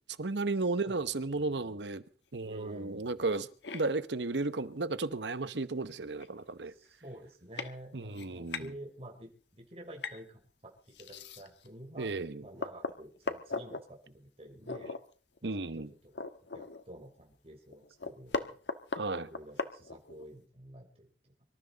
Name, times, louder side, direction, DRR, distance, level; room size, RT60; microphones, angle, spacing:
voice 1, 0.2-2.0 2.3-3.5 3.7-6.7 7.9-8.7 12.0-12.4 15.4-15.9 18.9-19.3, right 3 dB, 80° right, 1.0 m, -34 dB
voice 2, 0.9-1.8 2.4-3.3 6.7-12.1 12.4-14.9 15.4-16.1 16.5-18.6 19.2-21.3, right 1 dB, 35° right, 3.7 m, -50 dB
sound 1, 3.6-3.8 5.3-5.4 5.9-6.0 6.2-6.5 7.1-7.2 7.6-7.7 8.1-8.7 10.0-10.2 10.9-11.7 12.1-12.2 12.6-13.8 14.6-15.0 15.4-15.5 15.8-17.0 17.3-17.4 17.7-20.3, left 3 dB, 85° left, 1.3 m, -38 dB
25.0 x 13.0 x 4.0 m
head